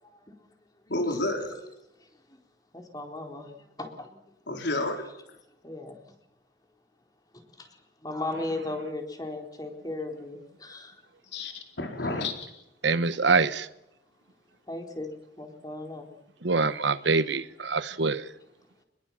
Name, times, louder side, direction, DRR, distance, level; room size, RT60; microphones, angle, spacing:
voice 1, 0.9-1.6 4.5-5.1 11.3-12.5, left 2 dB, 65° left, 3 dB, 4.4 m, -30 dB
voice 2, 2.7-3.5 3.8-4.2 5.6-6.0 7.6-10.9 14.7-15.1 15.4-16.1, left 2 dB, 20° left, 3 dB, 4.1 m, -36 dB
voice 3, 12.8-13.7 16.4-18.3, right 4 dB, 70° right, 14 dB, 1.2 m, -25 dB
26.5 x 21.5 x 7.4 m, 0.88 s
head